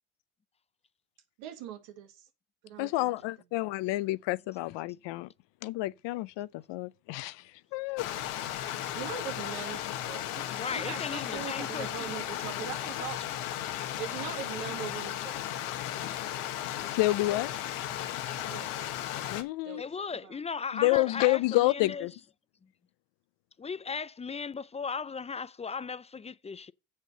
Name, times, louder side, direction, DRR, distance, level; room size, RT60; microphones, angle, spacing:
voice 1, 1.4-2.3 2.6-3.1 8.9-13.2 14.0-15.9 18.5-18.9 19.7-19.9 20.2-20.4, right 10 dB, 80° right, 1.8 m, -41 dB
voice 2, 2.8-5.3 5.6-7.4 7.7-8.1 17.0-17.5 19.3-19.8 20.7-22.1, left 19 dB, 65° left, 0.7 m, -29 dB
Stream, 8.0-19.4, left 12 dB, 85° left, 1.5 m, -35 dB
voice 3, 10.5-12.1 19.8-22.1 23.6-26.7, left 5 dB, 15° left, 0.4 m, -37 dB
7.6 x 6.4 x 6.6 m
supercardioid pair, 80°, 46 cm